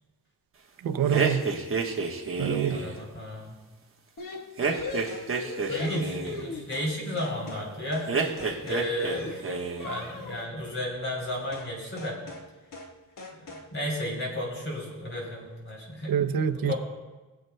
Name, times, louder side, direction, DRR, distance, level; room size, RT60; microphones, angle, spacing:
voice 1, 0.8-1.5 2.4-2.8 16.1-16.7, right 9 dB, 70° right, 9 dB, 0.6 m, -26 dB
sound 1, 1.1-2.9 4.6-6.4 8.1-9.2 9.4-10.0, right 4 dB, 35° right, 1.2 m, -29 dB
voice 2, 2.7-3.6 5.7-9.4 9.8-12.2 13.7-16.1 16.5-16.7, left 1 dB, 35° left, -2 dB, 3.4 m, -33 dB
sound 2, 4.2-6.9 7.2-7.7 7.9-8.1 8.4-10.5 11.5-11.7 12.0-12.5 12.7-12.9 13.2-13.7, left 3 dB, 60° left, 1.3 m, -39 dB
23.5 x 7.8 x 2.2 m, 1.2 s
wide cardioid pair, 140°, 37 cm